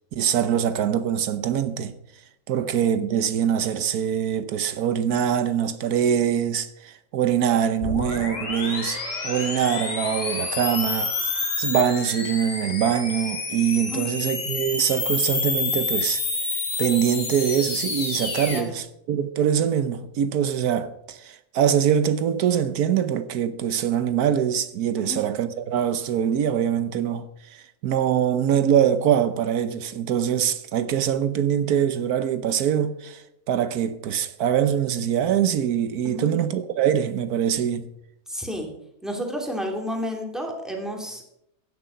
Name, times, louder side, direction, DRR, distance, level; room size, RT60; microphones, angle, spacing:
voice 1, 0.1-1.9 2.5-9.0 9.2-11.1 11.6-16.2 16.8-37.9, right 9 dB, 85° right, 1.3 m, -23 dB
sound 1, 7.8-18.6, left 4 dB, 55° left, 2.4 m, -28 dB
voice 2, 38.3-38.7 39.0-41.2, equal, ahead, 3.0 m, -31 dB
15.5 x 10.5 x 5.6 m
omnidirectional pair, 1.6 m